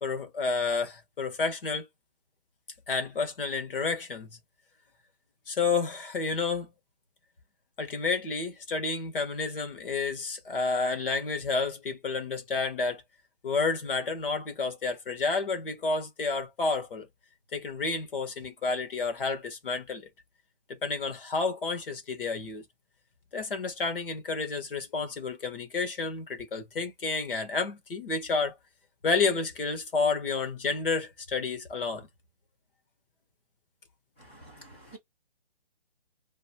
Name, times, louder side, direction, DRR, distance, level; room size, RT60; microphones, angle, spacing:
voice 1, 0.0-1.9 2.9-4.4 5.5-6.7 7.8-13.0 13.4-17.1 17.5-20.1 20.7-22.6 23.3-28.6 29.0-32.1, left 4 dB, 60° left, 1.5 m, -30 dB
voice 2, 34.2-35.0, right 2 dB, 10° left, 0.9 m, -50 dB
3.0 x 2.8 x 2.9 m
hypercardioid pair, 170°, 31 cm